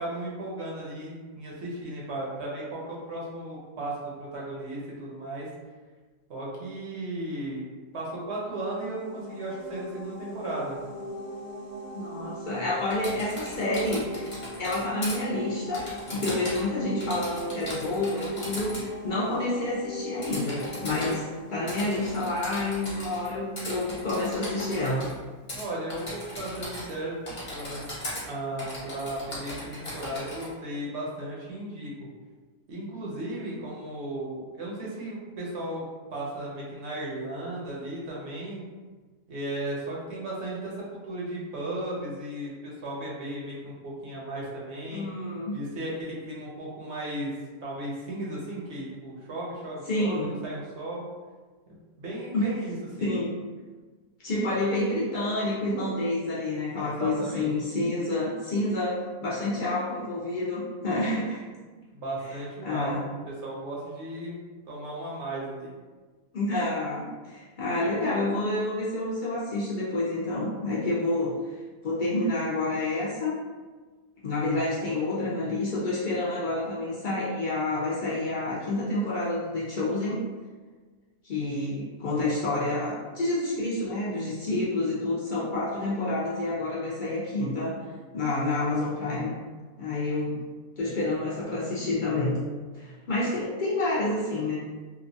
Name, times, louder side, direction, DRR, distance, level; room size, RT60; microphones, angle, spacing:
voice 1, 0.0-5.5 6.3-7.6 7.9-10.8 25.5-27.2 27.5-27.9 28.3-32.1 32.7-38.6 39.3-45.1 45.5-51.1 51.7-53.2 56.7-57.5 61.9-63.0 63.3-64.4 64.7-65.7, right 1 dB, 60° right, -4 dB, 0.9 m, -35 dB
sound 1, 8.5-23.1, equal, 80° right, 1.3 m, -41 dB
voice 2, 11.9-14.3 14.6-25.1 44.9-45.6 49.9-50.3 52.3-52.5 53.0-53.3 54.2-61.4 62.6-63.0 66.3-71.4 71.8-73.4 74.2-80.3 81.2-87.8 88.1-89.4 89.8-90.4 90.8-92.4 92.7-94.6, left 2 dB, 65° left, -7 dB, 0.4 m, -28 dB
Typing, 12.9-15.2 15.7-16.7 17.0-18.9 20.2-21.2 21.7-23.3 23.6-25.1 25.5-25.6 25.9-27.0 27.3-28.2 28.6-30.5, left 1 dB, 40° left, 0.9 m, -38 dB
2.9 x 2.1 x 2.6 m, 1.4 s
omnidirectional pair, 1.5 m